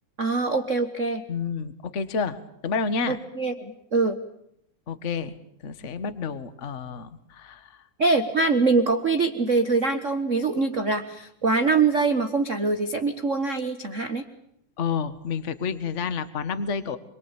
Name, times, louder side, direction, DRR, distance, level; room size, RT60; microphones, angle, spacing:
voice 1, 0.2-1.2 3.1-4.2 8.0-14.2, right 3 dB, 45° right, 6 dB, 1.0 m, -24 dB
voice 2, 1.3-2.4 2.6-3.2 4.9-5.4 5.6-7.7 14.8-17.0, left 5 dB, 35° left, 12 dB, 1.2 m, -29 dB
27.0 x 22.5 x 9.0 m, 0.76 s
omnidirectional pair, 3.5 m